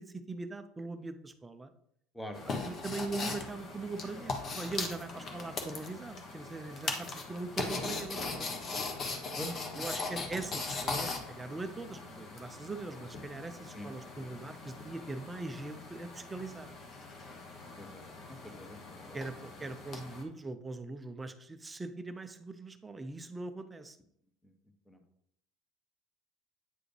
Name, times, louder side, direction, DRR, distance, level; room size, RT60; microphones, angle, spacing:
voice 1, 0.0-1.7 2.6-8.5 9.7-16.8 19.1-24.0, right 3 dB, 15° right, 9 dB, 0.5 m, -41 dB
voice 2, 2.1-2.6 9.4-9.5 9.8-9.9 13.7-13.9 17.8-19.2 24.9-25.0, equal, 5° left, 5 dB, 0.9 m, -44 dB
sound 1, 2.3-20.2, left 3 dB, 35° left, 1.1 m, -40 dB
8.9 x 4.8 x 3.3 m, 0.72 s
cardioid pair, 135°, 0 cm